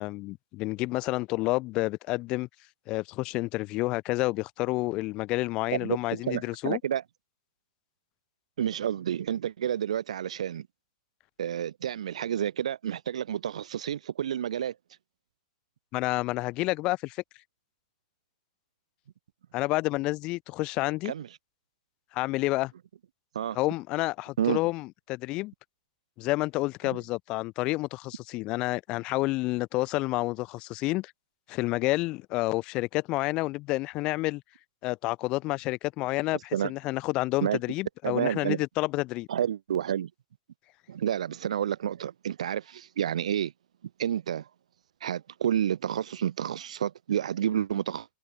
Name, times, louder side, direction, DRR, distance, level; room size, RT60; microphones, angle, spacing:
voice 1, 0.0-2.5 2.9-6.8 15.9-17.2 19.5-21.1 22.1-22.7 23.5-25.5 26.2-31.1 31.5-34.4 34.8-39.3, left 20 dB, 25° left, 6.5 m, -29 dB
voice 2, 5.7-7.0 8.6-10.7 11.4-14.8 21.0-21.3 23.3-23.6 24.4-24.6 26.9-27.0 36.5-36.7 37.4-37.6 38.0-38.6 39.3-40.1 40.9-43.5 44.0-44.5 45.0-48.1, right 9 dB, 75° right, 7.9 m, -30 dB
supercardioid pair, 180°, 4 cm